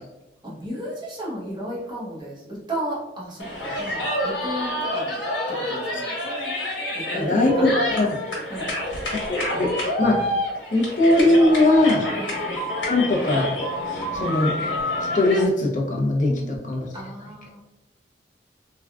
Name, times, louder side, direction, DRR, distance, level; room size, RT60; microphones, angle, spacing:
voice 1, 0.4-5.2 5.5-6.1 6.9-8.1 8.5-8.7 12.1-12.4 16.3-16.6 16.9-17.6, right 1 dB, 25° right, -6 dB, 1.0 m, -34 dB
sound 1, 3.4-15.4, left 1 dB, 85° left, 1.1 m, -27 dB
voice 2, 7.1-7.5 7.8-8.1 9.3-9.7 10.0-10.3 10.7-12.1 12.9-13.5 14.1-14.5 15.1-16.3 16.7-16.8, left 2 dB, 45° left, -2 dB, 0.6 m, -20 dB
3.4 x 2.3 x 2.3 m, 0.97 s
head